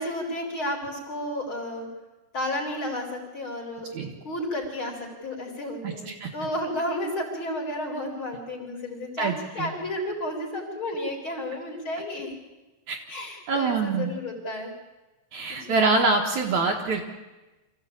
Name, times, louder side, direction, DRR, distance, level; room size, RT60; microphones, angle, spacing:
voice 1, 0.0-1.9 2.3-12.4 13.1-14.7 15.6-15.8, left 1 dB, 35° left, -1 dB, 4.5 m, -32 dB
voice 2, 5.8-6.3 9.2-9.7 12.9-13.0 13.5-14.1 15.3-17.0, right 3 dB, 60° right, 1 dB, 2.6 m, -25 dB
25.5 x 15.0 x 8.7 m, 1.1 s
omnidirectional pair, 4.3 m